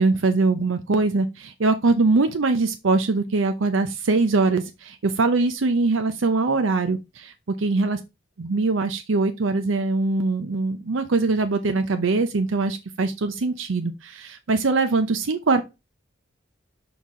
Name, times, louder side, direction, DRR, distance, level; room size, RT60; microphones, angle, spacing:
voice 1, 0.0-7.0 7.6-8.0 8.4-15.6, right 3 dB, 80° right, 0.6 m, -22 dB
5.5 x 4.6 x 3.7 m
head